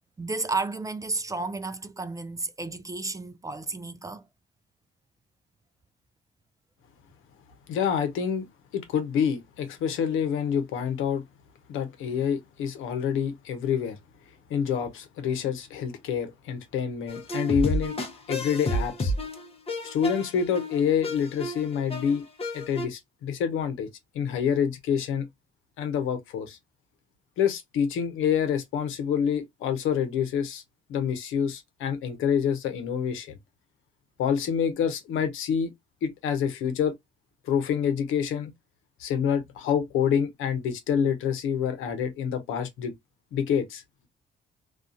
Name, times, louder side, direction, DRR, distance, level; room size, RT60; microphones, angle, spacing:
voice 1, 0.2-4.2, right 3 dB, 15° right, 0.3 m, -32 dB
voice 2, 7.7-8.4 8.7-11.2 11.7-14.0 14.5-18.0 18.3-19.1 19.8-22.2 22.5-23.9 24.1-25.3 25.8-26.6 27.4-30.6 30.9-33.4 34.2-35.7 36.0-36.9 37.4-38.5 39.0-42.9 43.3-43.8, left 7 dB, 90° left, 0.8 m, -27 dB
sound 1, 17.1-22.9, equal, 30° left, 0.7 m, -31 dB
2.4 x 2.4 x 2.5 m
cardioid pair, 90°, 20 cm